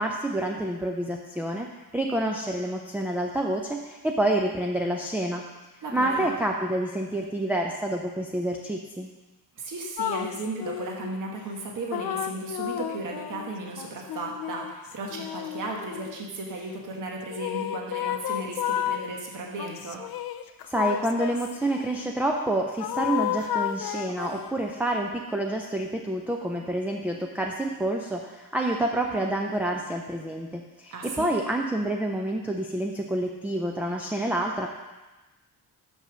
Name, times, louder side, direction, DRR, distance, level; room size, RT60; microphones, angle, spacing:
voice 1, 0.0-1.7 1.9-5.4 5.9-9.1 20.7-34.7, right 1 dB, 5° right, 0 dB, 0.4 m, -28 dB
voice 2, 5.8-6.3 9.6-20.0 30.9-31.3, right 2 dB, 55° right, 0 dB, 1.2 m, -35 dB
sound 1, 10.0-11.1 11.9-16.3 17.3-19.1 19.6-22.0 22.8-24.6, left 11 dB, 70° left, 0.5 m, -32 dB
6.4 x 5.4 x 6.1 m, 1.1 s
wide cardioid pair, 175°, 38 cm